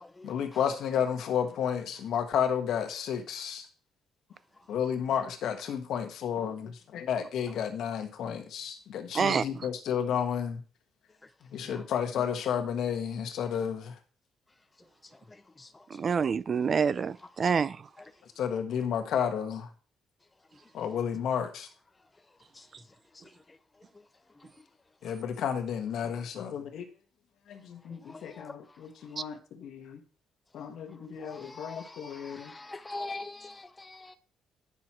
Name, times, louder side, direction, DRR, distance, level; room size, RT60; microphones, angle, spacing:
voice 1, 0.2-3.6 4.7-10.6 11.5-13.9 18.4-19.7 20.7-21.7 25.0-26.8 27.5-30.0 30.5-32.5, left 8 dB, 70° left, 1.5 m, -32 dB
voice 2, 15.9-17.8, right 6 dB, 35° right, 0.3 m, -27 dB
voice 3, 31.6-31.9 32.3-33.5 34.0-34.2, left 2 dB, 15° left, 0.6 m, -40 dB
9.8 x 6.2 x 4.4 m
cardioid pair, 140°, 0 cm